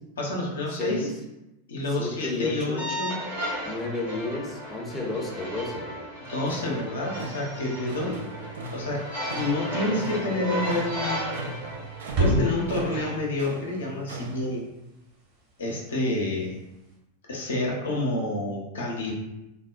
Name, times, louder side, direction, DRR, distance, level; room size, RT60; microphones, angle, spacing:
voice 1, 0.2-1.1 1.7-3.2 6.3-8.1 8.7-11.3 12.2-14.6 15.6-16.6 17.3-19.1, left 2 dB, 65° left, -2 dB, 0.6 m, -29 dB
voice 2, 0.8-1.1 1.9-2.9 3.6-5.9 8.0-8.2, left 2 dB, 15° left, -3 dB, 0.6 m, -31 dB
sound 1, 2.8-13.1, equal, 80° right, 1.2 m, -35 dB
sound 2, 6.2-14.5, right 2 dB, 60° right, 0.4 m, -39 dB
sound 3, 8.1-17.0, equal, 45° right, 1.0 m, -34 dB
3.5 x 2.1 x 2.4 m, 0.93 s
figure-of-eight pair, 90°, 0 cm